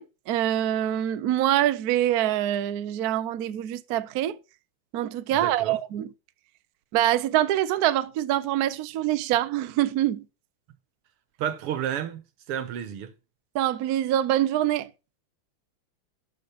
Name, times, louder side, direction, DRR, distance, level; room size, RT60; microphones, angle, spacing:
voice 1, 0.0-4.4 4.9-6.1 6.9-10.3 13.5-14.9, right 12 dB, 70° right, 0.9 m, -25 dB
voice 2, 5.3-5.8 11.4-12.2 12.5-13.1, right 10 dB, 85° right, 2.0 m, -31 dB
12.0 x 5.1 x 5.6 m
omnidirectional pair, 2.4 m